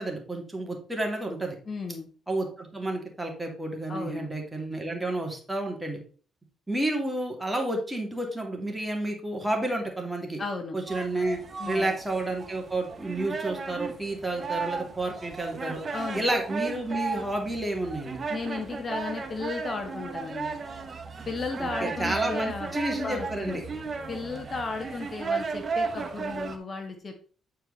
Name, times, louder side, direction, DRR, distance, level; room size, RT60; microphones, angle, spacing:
voice 1, 0.0-1.6 2.3-6.0 6.7-10.4 10.7-11.4 11.7-15.8 16.1-18.2 21.6-23.6, right 1 dB, 10° right, 1 dB, 2.4 m, -30 dB
voice 2, 1.7-2.1 3.9-4.3 10.4-10.8 11.6-11.9 15.9-16.2 18.3-20.6 21.3-22.7 23.0-23.6 24.1-27.1, left 4 dB, 40° left, 5 dB, 1.3 m, -34 dB
sound 1, 10.9-26.6, right 4 dB, 35° right, 1.3 m, -35 dB
9.3 x 4.6 x 4.0 m, 0.41 s
cardioid pair, 90°, 0 cm